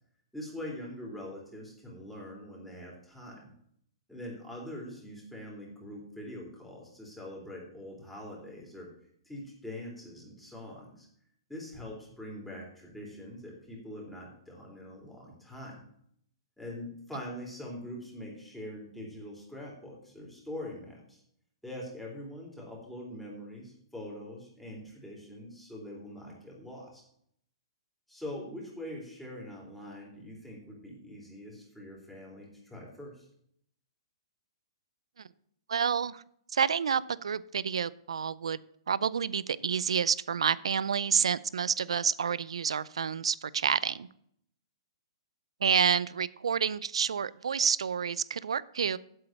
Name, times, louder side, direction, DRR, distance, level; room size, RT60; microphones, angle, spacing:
voice 1, 0.3-3.5 4.1-8.9 9.3-11.1 11.5-15.8 16.6-21.2 21.6-27.0 28.1-33.3, left 1 dB, 5° left, -3 dB, 3.7 m, -43 dB
voice 2, 35.7-36.2 36.5-38.6 38.9-44.1 45.6-49.0, right 7 dB, 85° right, 19 dB, 0.5 m, -29 dB
8.1 x 7.7 x 7.5 m, 0.69 s
hypercardioid pair, 140°, 3 cm